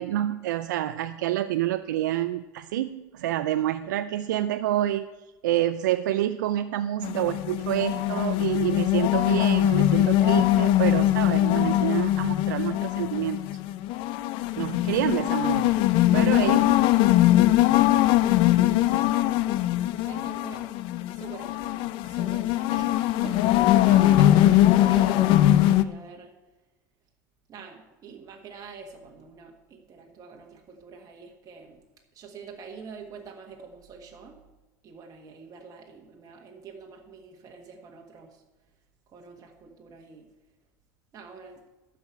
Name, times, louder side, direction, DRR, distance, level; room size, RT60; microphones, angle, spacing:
voice 1, 0.0-5.1 5.4-13.4 14.6-15.7 16.1-16.8 17.1-17.2, right 13 dB, 85° right, 10 dB, 0.4 m, -28 dB
sound 1, 7.0-25.8, left 14 dB, 60° left, 0.6 m, -21 dB
voice 2, 14.9-15.4 18.9-19.4 20.0-20.7 21.1-26.3 27.5-31.8 32.1-34.4 34.8-38.4 39.1-40.3 41.1-41.6, right 5 dB, 40° right, 0 dB, 1.5 m, -45 dB
12.5 x 5.0 x 8.3 m, 1.1 s
hypercardioid pair, 90°, 10 cm